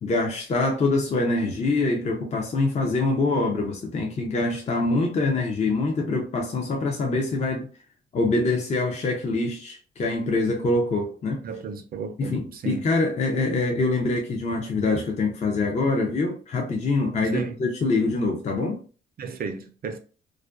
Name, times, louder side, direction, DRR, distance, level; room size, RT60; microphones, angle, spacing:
voice 1, 0.0-7.7 8.1-11.4 12.2-18.8, left 3 dB, 35° left, 0.5 m, -24 dB
voice 2, 11.4-12.8 17.3-17.6 19.2-20.0, right 5 dB, 50° right, 0.5 m, -33 dB
2.4 x 2.2 x 2.3 m
cardioid pair, 90°, 20 cm